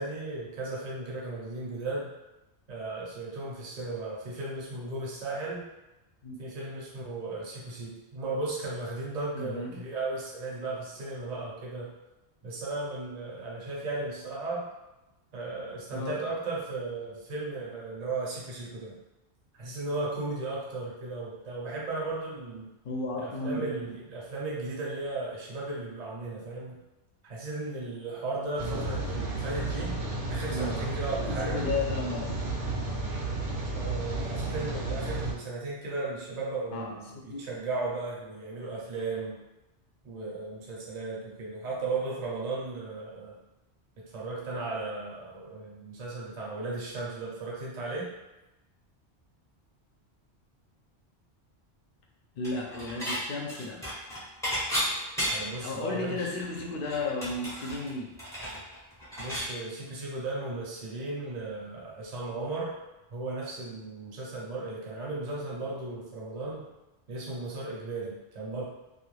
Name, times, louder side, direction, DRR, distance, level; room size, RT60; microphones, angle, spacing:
voice 1, 0.0-2.1 2.7-5.6 6.4-11.9 12.4-14.7 15.3-19.0 19.5-22.7 23.2-26.8 27.2-30.0 30.3-31.6 33.7-39.4 40.0-43.4 44.0-48.1 55.3-56.3 59.2-62.7 63.1-66.7 67.1-68.6, right 3 dB, 45° right, -5 dB, 0.7 m, -35 dB
voice 2, 9.3-9.8 15.9-16.2 22.8-23.7 30.5-30.9 31.3-32.4 36.7-36.9 37.3-37.4 52.4-53.8 55.6-58.1, left 3 dB, 60° left, 0 dB, 0.7 m, -33 dB
Rain, 28.6-35.3, right 2 dB, 70° right, 0.9 m, -32 dB
Dishes pots and pans / Chink clink, 52.4-53.2 53.5-55.6 56.0-56.1 56.4-59.5, equal, 5° left, 0.5 m, -33 dB
2.3 x 2.2 x 3.1 m, 1.0 s
omnidirectional pair, 1.1 m